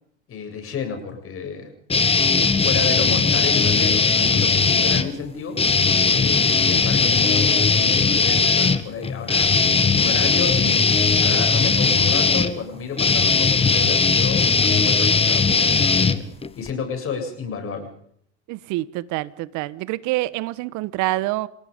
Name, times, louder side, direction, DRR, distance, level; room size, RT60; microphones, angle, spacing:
voice 1, 0.3-1.7 2.6-5.6 6.0-10.9 11.2-16.3 16.6-17.9, left 6 dB, 35° left, 7.8 m, -31 dB
sound 1, 1.9-5.1 5.5-16.7, left 4 dB, 15° left, 1.6 m, -18 dB
voice 2, 18.5-21.5, right 18 dB, 55° right, 1.3 m, -26 dB
29.5 x 17.5 x 5.3 m
hypercardioid pair, 90°, 36 cm